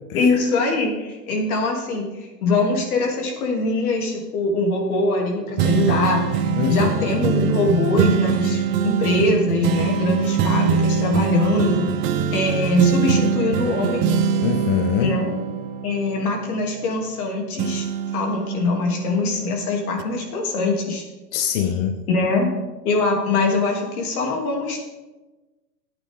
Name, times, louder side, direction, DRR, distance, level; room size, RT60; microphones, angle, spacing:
voice 1, 0.1-6.3 6.7-11.9 12.3-14.0 15.0-15.3 15.8-17.9 18.1-21.0 22.1-22.5 22.8-24.8, left 3 dB, 60° left, 1 dB, 3.0 m, -22 dB
sound 1, 5.6-17.2 17.6-19.5 20.0-20.1, right 6 dB, 25° right, 0.5 m, -23 dB
voice 2, 6.6-7.1 14.4-15.1 21.3-22.0, left 8 dB, 30° left, 7 dB, 0.7 m, -23 dB
13.5 x 8.9 x 3.7 m, 1.1 s
hypercardioid pair, 115°, 48 cm